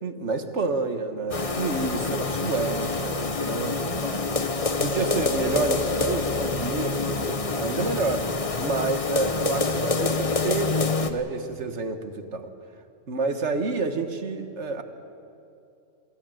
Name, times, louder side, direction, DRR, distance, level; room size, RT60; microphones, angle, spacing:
voice 1, 0.0-4.2 4.8-8.3 8.6-10.7 11.0-12.5 13.1-14.8, right 3 dB, 70° right, 8 dB, 1.7 m, -29 dB
sound 1, 1.3-11.1, left 3 dB, 30° left, 0.9 m, -26 dB
24.0 x 15.0 x 9.0 m, 2.6 s
omnidirectional pair, 1.2 m